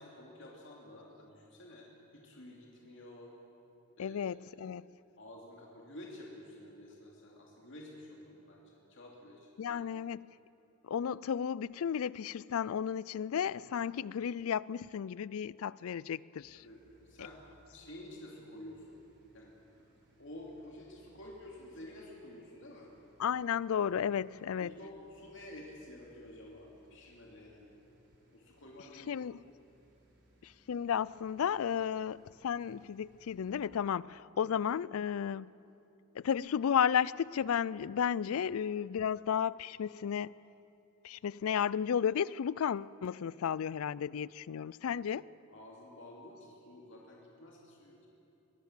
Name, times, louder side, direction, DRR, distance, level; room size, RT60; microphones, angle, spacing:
voice 1, 0.0-1.9 2.1-3.3 4.0-4.2 4.5-4.8 5.2-10.1 16.5-17.4 17.7-19.0 19.3-19.9 20.2-22.9 24.6-27.7 28.3-29.2 34.3-34.5 44.9-45.0 45.5-48.1, left 1 dB, 60° left, 2.7 m, -51 dB
voice 2, 4.0-4.9 9.6-10.3 10.8-16.6 23.2-24.7 29.1-29.4 30.4-35.5 36.2-40.4 41.0-45.2, left 8 dB, 75° left, 0.4 m, -33 dB
sound 1, 16.4-33.5, right 1 dB, 50° right, 4.1 m, -67 dB
22.5 x 16.5 x 7.4 m
head